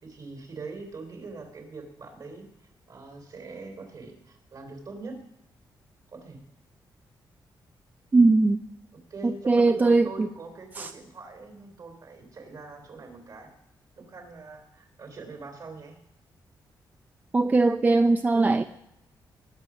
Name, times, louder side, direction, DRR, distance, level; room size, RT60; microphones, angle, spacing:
voice 1, 0.0-5.2 6.1-6.4 8.9-13.5 13.9-16.0, right 3 dB, 55° right, 5 dB, 3.5 m, -43 dB
voice 2, 8.1-8.6 9.2-10.3 10.8-10.9 17.3-18.6, right 3 dB, 20° right, 9 dB, 0.4 m, -20 dB
20.0 x 7.4 x 6.2 m, 0.84 s
wide cardioid pair, 135°, 8 cm